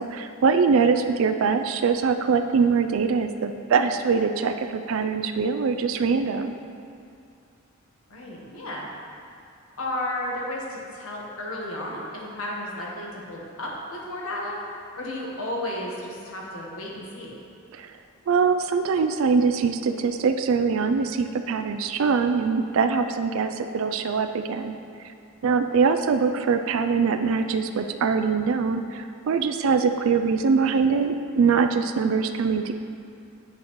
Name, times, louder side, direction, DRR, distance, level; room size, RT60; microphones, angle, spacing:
voice 1, 0.0-6.6 17.7-18.0 18.3-24.7 25.4-32.7, right 5 dB, 65° right, 7 dB, 0.3 m, -23 dB
voice 2, 8.1-8.9 9.8-14.6 15.0-17.4, left 1 dB, 70° left, -3 dB, 1.2 m, -33 dB
8.5 x 5.4 x 3.0 m, 2.5 s
head